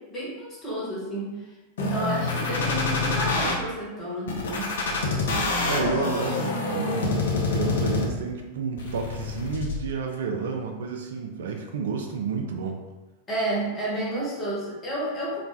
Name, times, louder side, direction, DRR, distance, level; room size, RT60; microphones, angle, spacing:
voice 1, 0.0-1.4 1.8-4.7 13.3-15.4, right 1 dB, 25° left, -6 dB, 1.1 m, -31 dB
sound 1, 1.8-3.5 4.3-8.3 8.8-9.8, left 3 dB, 65° left, 0.4 m, -26 dB
voice 2, 4.9-12.8, right 5 dB, 60° right, 3 dB, 0.3 m, -31 dB
2.4 x 2.1 x 3.1 m, 1.1 s
figure-of-eight pair, 90°, 0 cm